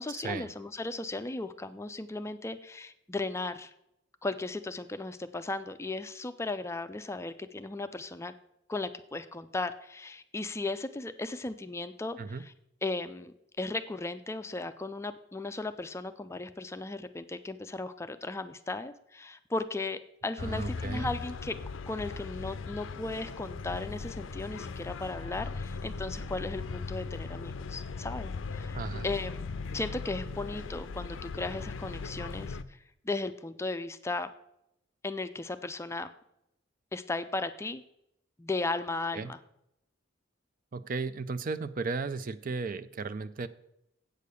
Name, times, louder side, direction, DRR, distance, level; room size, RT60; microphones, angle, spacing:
voice 1, 0.0-3.7 4.2-8.3 8.7-12.5 12.8-21.6 21.9-28.8 29.0-29.4 29.7-34.3 35.0-36.1 36.9-37.8 38.4-39.4, left 2 dB, 15° left, 10 dB, 0.4 m, -36 dB
sound 1, 20.4-32.6, left 4 dB, 75° left, 0.5 m, -38 dB
voice 2, 20.4-21.2 28.7-29.1 39.1-39.3 40.7-43.5, right 4 dB, 45° right, 13 dB, 0.5 m, -35 dB
8.3 x 6.6 x 6.8 m, 0.80 s
head